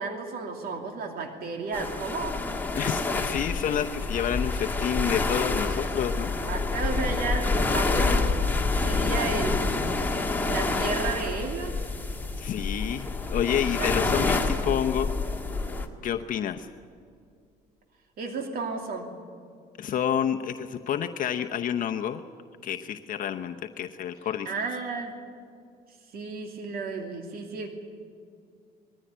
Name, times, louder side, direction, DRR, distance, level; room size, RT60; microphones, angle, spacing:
voice 1, 0.0-2.4 6.5-8.3 8.8-9.7 10.5-11.8 13.8-14.0 18.2-19.1 24.4-25.2 26.1-27.7, right 4 dB, 60° right, 3 dB, 2.6 m, -33 dB
sound 1, 1.7-15.9, left 3 dB, 10° left, 1.9 m, -27 dB
voice 2, 2.8-6.3 12.4-15.1 16.0-16.7 19.8-22.2 22.6-24.5, left 9 dB, 55° left, 6 dB, 0.9 m, -29 dB
20.5 x 14.5 x 9.9 m, 2.3 s
cardioid pair, 110°, 17 cm